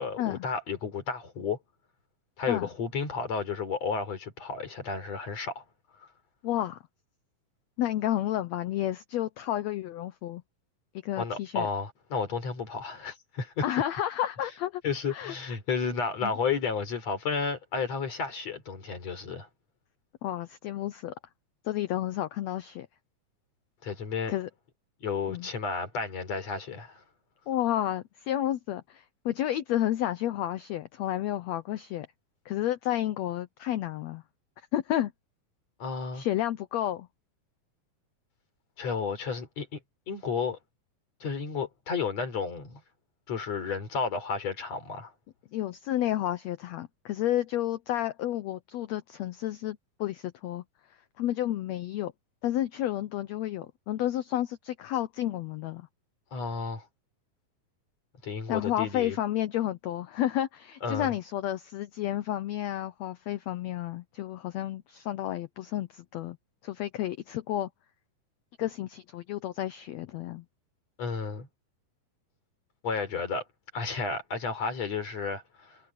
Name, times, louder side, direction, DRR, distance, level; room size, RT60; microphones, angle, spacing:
voice 1, 0.0-1.6 2.4-5.6 11.2-13.6 14.8-19.5 23.8-24.4 25.0-27.0 35.8-36.3 38.8-39.8 40.1-40.6 41.2-42.8 43.3-45.1 56.3-56.8 58.2-59.2 60.8-61.1 71.0-71.5 72.8-73.4 73.7-75.8, left 5 dB, 50° left, 5.1 m, -32 dB
voice 2, 6.4-6.8 7.8-10.4 11.0-11.7 13.6-14.8 15.1-15.3 16.2-16.3 20.2-21.1 21.6-22.9 24.3-24.5 25.3-25.5 27.5-32.1 32.4-34.2 34.7-35.1 36.1-37.1 45.5-50.6 51.2-52.1 52.4-55.8 58.5-66.4 66.6-67.7 68.6-70.4, left 13 dB, 80° left, 1.5 m, -31 dB
omnidirectional pair, 3.9 m